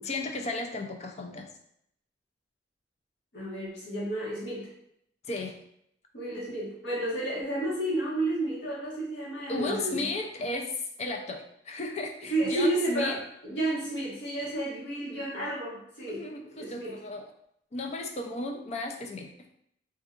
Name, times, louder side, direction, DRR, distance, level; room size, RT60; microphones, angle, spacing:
voice 1, 0.0-1.5 5.3-5.6 9.5-10.7 11.0-13.2 16.1-17.3 17.7-19.5, left 2 dB, 40° left, 3 dB, 0.4 m, -34 dB
voice 2, 3.3-4.7 6.1-10.0 12.3-16.3 16.6-17.0, right 1 dB, 90° left, -7 dB, 1.5 m, -31 dB
3.8 x 2.6 x 2.4 m, 0.73 s
head